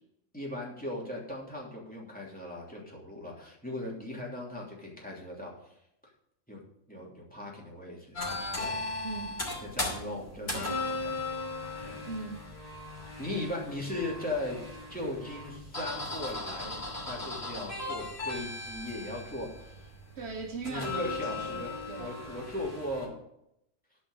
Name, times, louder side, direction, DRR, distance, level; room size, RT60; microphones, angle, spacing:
voice 1, 0.3-5.8 6.5-6.6 6.9-9.0 9.6-11.3 11.8-12.1 13.2-19.9 20.6-23.1, left 1 dB, 5° left, 3.1 m, -38 dB
sound 1, 8.2-23.1, left 2 dB, 55° left, 3.3 m, -37 dB
voice 2, 9.0-9.5 12.0-12.5 20.2-22.2, right 4 dB, 60° right, 1.0 m, -40 dB
13.5 x 5.3 x 6.7 m
omnidirectional pair, 1.3 m